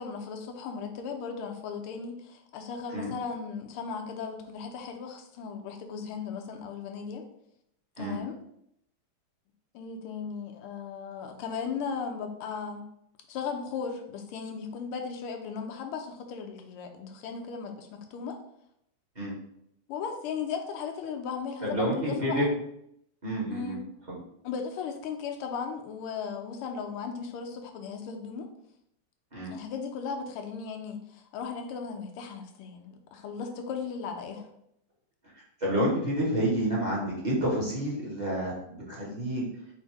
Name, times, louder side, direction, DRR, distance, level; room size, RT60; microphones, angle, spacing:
voice 1, 0.0-7.2 8.0-8.4 9.7-12.9 13.3-18.4 19.9-22.6 23.5-23.8 24.4-28.5 29.5-34.5, left 6 dB, 85° left, 4 dB, 1.6 m, -36 dB
voice 2, 21.6-22.5 23.2-23.8 24.1-24.2 29.3-29.5 35.6-39.5, equal, 25° right, -6 dB, 1.0 m, -29 dB
4.2 x 2.7 x 4.6 m, 0.74 s
omnidirectional pair, 2.4 m